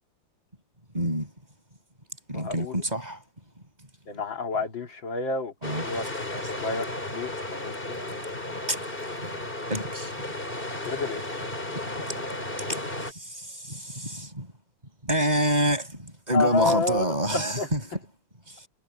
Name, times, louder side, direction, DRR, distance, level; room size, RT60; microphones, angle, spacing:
voice 1, 0.9-1.3 2.3-3.2 5.6-5.9 8.7-8.8 9.2-9.4 9.7-10.2 12.1-12.2 12.6-14.5 15.0-17.8 18.5-18.7, equal, 20° right, 5.6 m, -28 dB
voice 2, 2.3-2.8 4.1-6.0 6.3-6.9 7.1-8.0 10.8-11.5 16.3-17.7, left 3 dB, 85° left, 3.3 m, -29 dB
sound 1, 5.6-13.1, left 2 dB, 25° left, 4.6 m, -34 dB
omnidirectional pair, 2.0 m